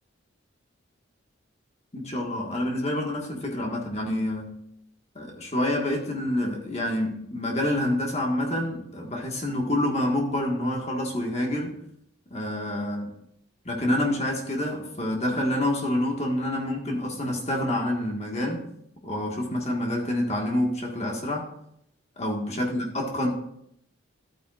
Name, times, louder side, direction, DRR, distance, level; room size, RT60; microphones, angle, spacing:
voice 1, 1.9-4.6 5.1-11.8 12.3-13.1 13.6-18.6 19.0-21.5 22.2-23.3, left 1 dB, 30° left, 1 dB, 1.6 m, -27 dB
12.5 x 8.9 x 2.5 m, 0.72 s
head